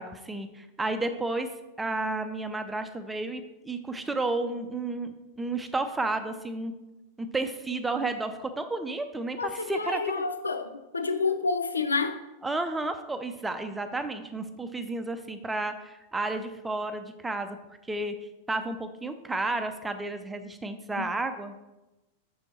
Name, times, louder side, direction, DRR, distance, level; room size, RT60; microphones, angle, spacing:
voice 1, 0.0-1.5 1.8-6.7 7.2-10.2 12.4-17.6 17.9-18.1 18.5-21.5, right 2 dB, 10° right, 8 dB, 0.6 m, -32 dB
voice 2, 9.4-12.2 21.0-21.1, left 4 dB, 75° left, 9 dB, 0.4 m, -29 dB
6.3 x 5.2 x 4.3 m, 0.99 s
figure-of-eight pair, 90°, 0 cm